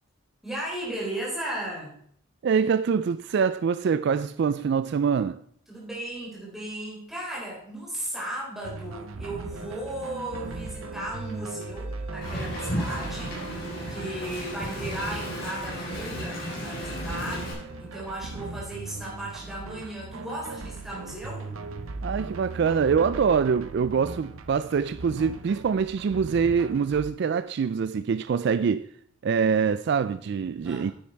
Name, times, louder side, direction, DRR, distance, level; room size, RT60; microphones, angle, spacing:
voice 1, 0.4-1.9 5.7-13.6 13.9-21.5 30.6-30.9, right 1 dB, ahead, 3.9 m, -36 dB
voice 2, 2.4-5.4 22.0-28.9 29.2-30.9, right 6 dB, 55° right, 0.3 m, -24 dB
sound 1, 8.6-27.1, right 3 dB, 85° right, 0.7 m, -39 dB
sound 2, 9.5-18.5, right 2 dB, 30° right, 1.7 m, -46 dB
Wind, 12.2-17.5, equal, 50° left, 4.2 m, -34 dB
9.8 x 8.5 x 4.5 m
head